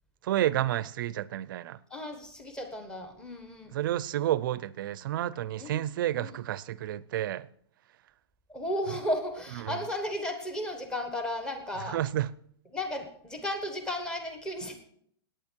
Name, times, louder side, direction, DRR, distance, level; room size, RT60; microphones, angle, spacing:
voice 1, 0.2-1.8 3.7-7.5 9.6-9.8 11.9-12.3, right 12 dB, 55° right, 0.5 m, -30 dB
voice 2, 1.9-3.8 5.6-5.8 6.2-6.4 8.5-12.0 12.7-14.8, left 1 dB, 5° left, 1.2 m, -34 dB
17.5 x 9.1 x 4.6 m
supercardioid pair, 165°, 14 cm